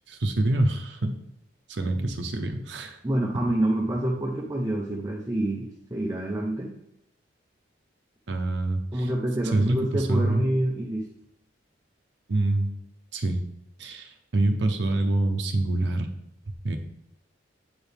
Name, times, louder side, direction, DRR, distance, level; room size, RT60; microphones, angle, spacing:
voice 1, 0.1-1.2 1.7-3.0 8.3-9.1 9.5-10.4 12.3-12.7 13.1-13.4 13.8-16.1 16.6-16.8, right 2 dB, 65° right, 4 dB, 0.7 m, -25 dB
voice 2, 3.0-6.7 8.9-11.1, right 1 dB, 15° right, -2 dB, 0.7 m, -27 dB
7.9 x 4.6 x 3.4 m, 0.78 s
head